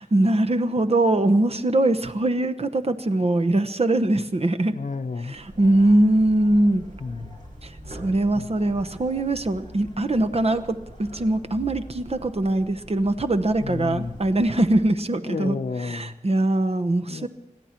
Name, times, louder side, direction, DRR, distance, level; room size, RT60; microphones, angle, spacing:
voice 1, 0.1-4.7 5.3-6.8 7.6-15.6 15.9-17.3, right 1 dB, 50° right, 7 dB, 1.0 m, -22 dB
voice 2, 4.7-5.4 7.0-7.4 8.3-8.6 13.6-14.2 15.2-16.2 17.1-17.3, left 4 dB, 80° left, 10 dB, 0.7 m, -32 dB
sound 1, 5.3-14.8, right 1 dB, 75° right, 5.2 m, -44 dB
20.5 x 14.5 x 4.4 m, 1.0 s
wide cardioid pair, 65°, 13 cm